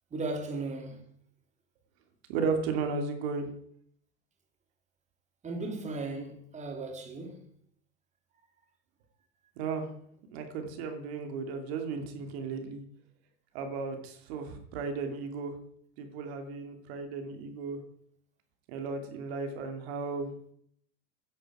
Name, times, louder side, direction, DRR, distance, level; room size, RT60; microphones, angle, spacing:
voice 1, 0.1-1.0 5.4-7.4, right 3 dB, 20° right, 2.8 m, -36 dB
voice 2, 2.3-3.5 9.6-9.9 10.3-12.8 13.5-15.5 16.0-17.8 18.7-20.3, right 4 dB, 70° right, 2.7 m, -34 dB
15.5 x 10.5 x 4.9 m
supercardioid pair, 130°, 32 cm